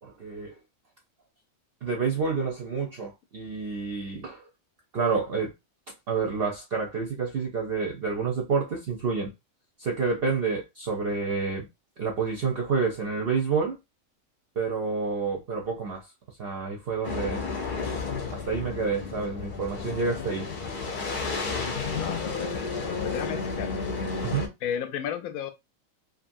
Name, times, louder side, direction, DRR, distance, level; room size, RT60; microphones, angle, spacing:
voice 1, 0.0-0.6 1.8-4.5 4.9-5.5 6.1-9.3 9.8-11.7 12.0-13.8 14.6-17.4 18.3-20.5 24.2-24.5, right 5 dB, 60° right, 0.7 m, -29 dB
sound 1, 17.0-24.5, left 4 dB, 50° left, 0.6 m, -32 dB
voice 2, 21.9-22.7 23.0-23.9 24.6-25.5, left 9 dB, 90° left, 1.0 m, -33 dB
2.6 x 2.5 x 2.6 m
omnidirectional pair, 1.4 m